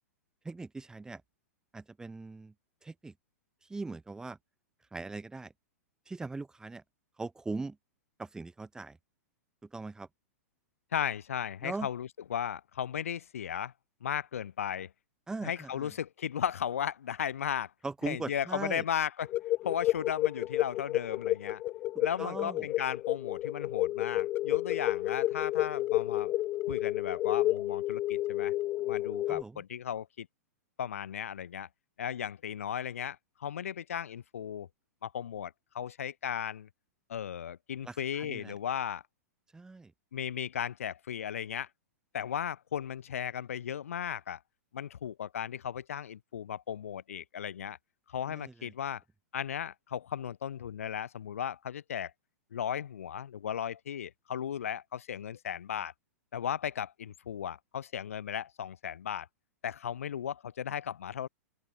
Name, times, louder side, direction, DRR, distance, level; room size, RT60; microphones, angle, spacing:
voice 1, 0.4-1.2 1.7-2.5 2.8-3.1 3.6-4.4 4.9-5.5 6.1-6.8 7.2-7.8 8.2-9.0 9.7-10.1 11.6-11.9 15.3-15.9 17.8-18.8 22.2-22.7 29.3-29.6 37.8-38.5 39.5-39.9 48.3-48.7, right 3 dB, 10° right, 2.2 m, -40 dB
voice 2, 10.9-13.7 14.0-14.9 15.4-17.7 18.0-19.3 19.6-21.6 22.0-26.3 26.7-28.5 28.9-30.3 30.8-31.7 32.0-34.7 35.0-36.7 37.1-39.0 40.1-41.7 42.1-44.4 44.7-47.8 48.1-49.0 49.3-52.1 52.5-55.9 56.3-59.3 59.6-61.3, left 9 dB, 60° left, 3.7 m, -36 dB
sound 1, 19.2-29.4, left 15 dB, 25° left, 0.5 m, -31 dB
open air
figure-of-eight pair, 100°, 8 cm